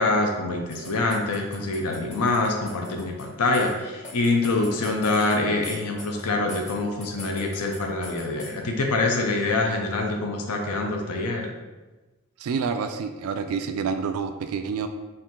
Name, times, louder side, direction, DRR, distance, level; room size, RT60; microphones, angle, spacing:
voice 1, 0.0-11.5, left 2 dB, 85° left, 2 dB, 0.5 m, -25 dB
sound 1, 0.7-3.2 3.5-3.7 4.0-5.4 5.6-6.8 7.0-8.5, left 3 dB, 30° left, 0.7 m, -41 dB
voice 2, 12.4-14.9, right 5 dB, 70° right, 7 dB, 0.3 m, -28 dB
4.3 x 2.5 x 3.6 m, 1.2 s
head